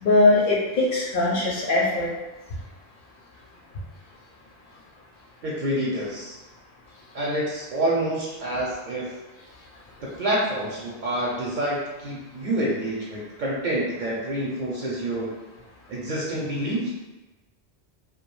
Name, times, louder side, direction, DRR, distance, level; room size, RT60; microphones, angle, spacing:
voice 1, 0.0-2.1, left 2 dB, 60° left, -4 dB, 0.7 m, -20 dB
voice 2, 5.4-6.4 7.1-9.1 10.0-15.3 15.9-16.9, right 1 dB, 60° right, -4 dB, 0.5 m, -27 dB
2.3 x 2.1 x 3.0 m, 1.1 s
omnidirectional pair, 1.1 m